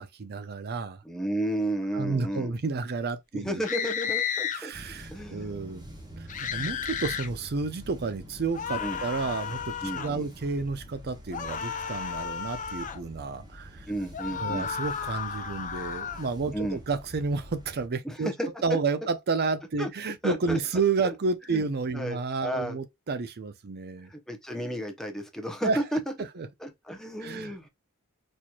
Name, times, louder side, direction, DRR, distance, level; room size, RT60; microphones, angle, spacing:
voice 1, 0.0-1.0 1.9-3.6 4.5-5.9 6.2-13.9 14.4-18.3 18.6-24.1 25.6-25.8 26.2-26.5 27.2-27.7, right 4 dB, 45° right, 0.5 m, -31 dB
voice 2, 1.0-2.5 3.3-4.7 5.1-5.6 8.8-9.0 9.8-10.3 13.9-14.7 16.5-16.8 18.0-18.5 19.8-19.9 20.2-20.6 21.0-21.1 21.5-21.6 21.9-22.8 24.1-26.0 26.6-27.7, right 1 dB, ahead, 0.8 m, -32 dB
sound 1, 3.6-4.6 6.3-7.3 8.5-10.1 11.3-13.0 14.1-16.3, left 7 dB, 35° left, 0.5 m, -33 dB
sound 2, 4.7-17.9, equal, 20° right, 1.3 m, -46 dB
4.3 x 3.1 x 2.3 m
head